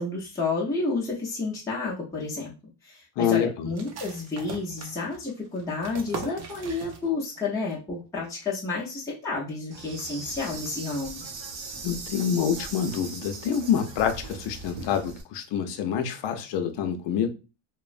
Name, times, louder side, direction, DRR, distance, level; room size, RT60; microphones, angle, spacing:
voice 1, 0.0-2.5 2.8-11.2, left 3 dB, 5° left, 0.6 m, -30 dB
voice 2, 3.2-3.7 11.8-17.3, left 8 dB, 60° left, 0.6 m, -27 dB
sound 1, 3.8-7.4 7.7-7.8 8.2-8.7, right 4 dB, 35° right, 0.5 m, -40 dB
Insect, 9.7-15.2, right 4 dB, 65° right, 0.8 m, -39 dB
3.0 x 2.1 x 2.4 m
cardioid pair, 130°, 48 cm